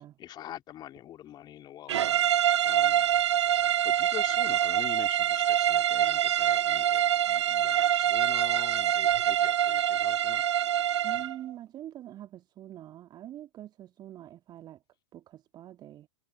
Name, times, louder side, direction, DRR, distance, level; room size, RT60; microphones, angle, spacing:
voice 1, 0.0-2.0 2.3-3.1 3.8-10.4, left 12 dB, 25° left, 2.8 m, -44 dB
sound 1, 1.9-11.4, right 11 dB, 60° right, 0.5 m, -25 dB
voice 2, 11.0-14.8 15.1-16.1, right 12 dB, 25° right, 1.7 m, -44 dB
figure-of-eight pair, 100°, 16 cm